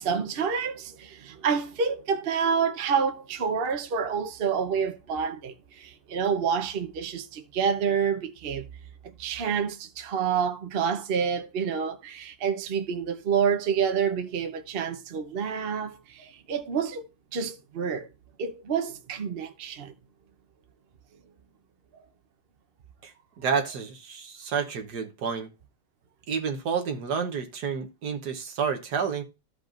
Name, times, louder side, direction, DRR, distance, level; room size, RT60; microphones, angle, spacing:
voice 1, 0.0-8.7 9.0-17.1 17.3-18.1 18.4-19.9, right 6 dB, 45° right, 0.8 m, -28 dB
voice 2, 23.0-25.5 26.3-29.2, right 6 dB, 70° right, 1.6 m, -30 dB
15.0 x 5.3 x 2.5 m
omnidirectional pair, 1.9 m